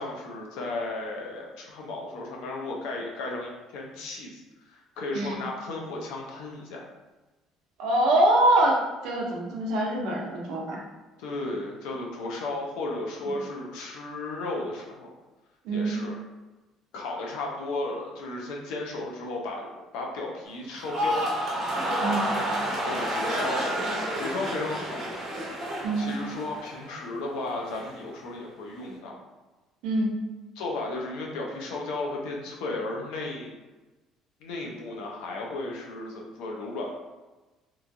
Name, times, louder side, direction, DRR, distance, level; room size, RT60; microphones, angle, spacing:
voice 1, 0.0-6.8 11.2-15.1 15.7-16.1 16.9-21.2 22.8-23.6 24.2-25.0 26.0-29.2 30.6-33.6 34.4-36.9, left 2 dB, 85° left, -1 dB, 0.6 m, -34 dB
voice 2, 7.8-10.8 15.6-15.9 22.0-22.3 25.8-26.1 29.8-30.1, right 1 dB, 70° right, -2 dB, 0.7 m, -24 dB
sound 1, 20.7-27.1 27.4-27.9, equal, 35° right, 0.9 m, -30 dB
3.0 x 2.3 x 2.6 m, 1.2 s
cardioid pair, 155°, 0 cm